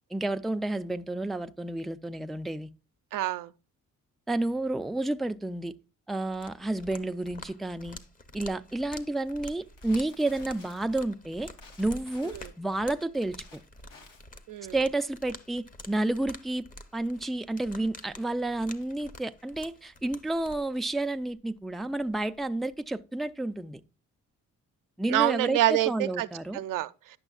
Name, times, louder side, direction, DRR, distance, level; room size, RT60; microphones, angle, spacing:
voice 1, 0.1-2.7 4.3-5.7 6.1-8.0 8.3-11.5 11.8-13.6 14.7-16.6 16.9-23.8 25.0-26.6, right 2 dB, ahead, 0.3 m, -30 dB
voice 2, 3.1-3.5 12.2-12.5 14.5-14.8 25.1-26.3 26.5-27.2, right 15 dB, 90° right, 0.5 m, -27 dB
sound 1, 6.3-20.6, left 2 dB, 25° left, 0.7 m, -48 dB
Crackle, 8.7-22.9, left 2 dB, 85° left, 1.6 m, -57 dB
9.9 x 6.1 x 2.4 m
cardioid pair, 100°, 31 cm